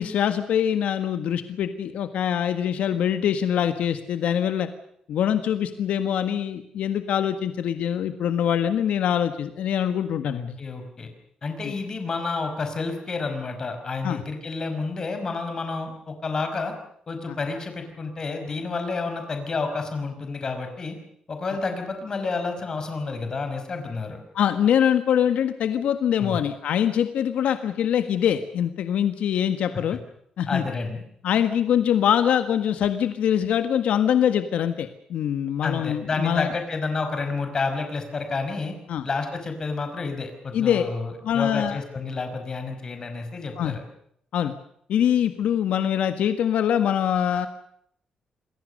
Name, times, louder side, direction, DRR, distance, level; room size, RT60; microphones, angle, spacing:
voice 1, 0.0-4.7 5.1-10.6 11.6-11.7 14.0-14.2 17.3-17.4 24.3-30.0 30.4-30.6 31.2-36.5 38.9-39.0 40.5-40.8 41.2-41.8 43.6-43.8 44.3-44.5 44.9-47.5, left 9 dB, 80° left, 9 dB, 1.7 m, -23 dB
voice 2, 10.2-11.1 11.4-16.7 17.1-21.0 21.3-24.2 26.2-26.4 30.5-31.0 35.6-38.7 39.0-43.8, left 4 dB, 30° left, 6 dB, 5.2 m, -30 dB
28.0 x 21.5 x 6.7 m, 0.70 s
wide cardioid pair, 175°, 2 cm